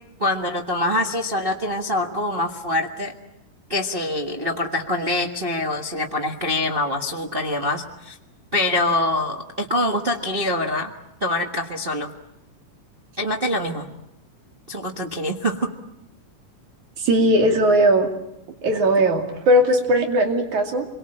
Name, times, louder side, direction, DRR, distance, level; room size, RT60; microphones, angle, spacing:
voice 1, 0.2-3.1 3.7-8.2 8.5-10.9 11.2-12.1 13.2-13.9 14.7-15.7, left 1 dB, 30° right, 2 dB, 1.0 m, -24 dB
voice 2, 17.0-18.1 18.6-20.9, right 1 dB, 65° right, 4 dB, 4.0 m, -18 dB
27.0 x 23.0 x 8.7 m, 0.83 s
omnidirectional pair, 3.7 m